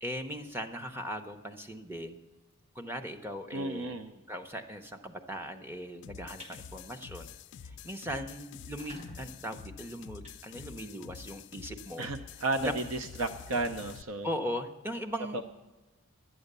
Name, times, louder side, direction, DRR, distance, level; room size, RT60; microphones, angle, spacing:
voice 1, 0.0-2.2 2.7-3.9 4.3-7.3 7.6-12.1 12.6-12.7 14.2-15.4, equal, 10° right, 6 dB, 0.7 m, -39 dB
voice 2, 3.5-4.1 12.0-14.3 15.3-15.4, right 2 dB, 70° right, 9 dB, 0.6 m, -33 dB
sound 1, 6.0-14.0, left 7 dB, 50° left, 0.3 m, -48 dB
sound 2, 6.4-6.6 7.0-7.3 7.6-7.7 7.9-8.0 8.6-11.1, left 1 dB, 30° right, 1.5 m, -52 dB
11.0 x 9.0 x 6.7 m, 1.2 s
head